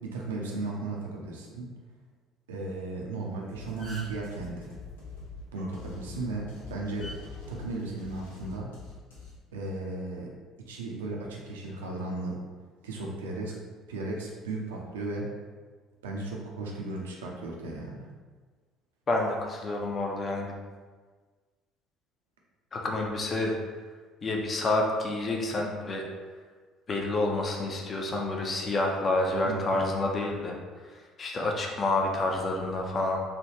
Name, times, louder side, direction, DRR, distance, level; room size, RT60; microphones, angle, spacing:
voice 1, 0.0-1.7 2.5-4.7 5.5-7.1 7.5-8.7 9.5-10.4 10.7-12.4 12.8-13.6 13.9-15.3 16.0-18.1 29.4-29.9, right 2 dB, 70° right, -1 dB, 0.5 m, -35 dB
sound 1, 3.2-3.4 3.6-4.3 5.9-6.1 7.0-7.2 8.2-8.5, right 1 dB, 50° left, 0.9 m, -43 dB
sound 2, 3.5-9.3, left 4 dB, 80° left, 0.7 m, -45 dB
voice 2, 19.1-20.6 22.7-23.5 24.2-26.1 26.9-30.6 30.9-33.2, left 2 dB, 35° left, 1 dB, 0.5 m, -29 dB
3.3 x 2.3 x 2.8 m, 1.4 s
figure-of-eight pair, 55°, 0 cm